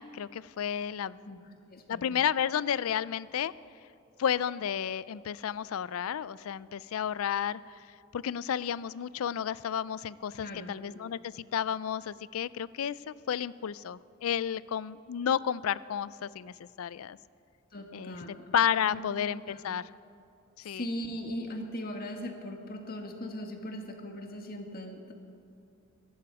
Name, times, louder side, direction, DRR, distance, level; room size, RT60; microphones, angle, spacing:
voice 1, 0.0-1.2 1.9-3.5 4.2-7.9 8.1-17.2 17.9-18.2 18.5-19.8 20.6-20.8, left 8 dB, 85° left, 19 dB, 0.4 m, -32 dB
voice 2, 1.7-2.2 10.4-10.8 17.7-18.4 18.8-19.0 19.5-19.6 20.6-25.1, equal, 45° left, 3 dB, 1.8 m, -39 dB
23.0 x 12.0 x 4.8 m, 2.7 s
head